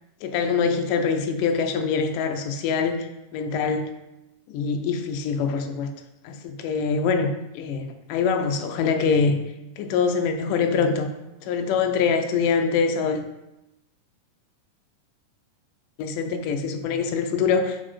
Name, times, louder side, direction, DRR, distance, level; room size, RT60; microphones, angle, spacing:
voice 1, 0.2-3.9 4.5-5.9 6.2-9.4 9.8-11.1 11.4-13.2 16.0-17.8, left 5 dB, 80° left, 6 dB, 2.0 m, -24 dB
6.2 x 5.0 x 4.2 m, 0.95 s
omnidirectional pair, 4.0 m